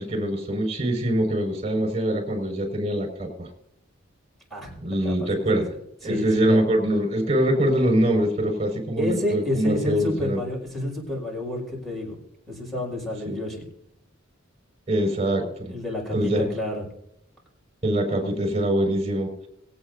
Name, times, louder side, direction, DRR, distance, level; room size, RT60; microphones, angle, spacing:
voice 1, 0.0-3.5 4.8-5.7 6.0-10.4 13.2-13.4 14.9-15.7 16.1-16.5 17.8-19.3, right 1 dB, 30° right, 2 dB, 5.6 m, -23 dB
voice 2, 4.5-5.6 6.0-6.6 9.0-12.2 12.5-13.6 15.3-15.4 15.7-16.8, left 1 dB, ahead, -3 dB, 6.1 m, -30 dB
23.0 x 8.9 x 2.8 m, 0.75 s
head